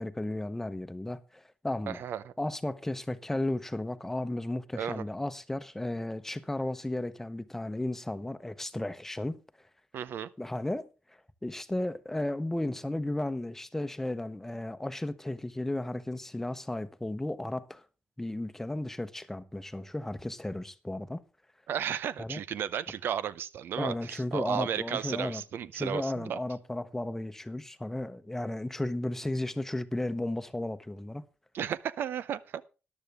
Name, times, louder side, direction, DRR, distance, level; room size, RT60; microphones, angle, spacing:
voice 1, 0.0-2.0 2.4-9.4 10.4-17.8 18.2-21.2 22.2-22.4 23.8-25.4 25.7-31.2, left 1 dB, 10° left, 0.9 m, -34 dB
voice 2, 1.9-2.3 4.8-5.0 9.9-10.3 21.7-26.4 31.5-32.6, right 9 dB, 90° right, 0.6 m, -34 dB
13.5 x 11.0 x 3.5 m
wide cardioid pair, 120°, 4 cm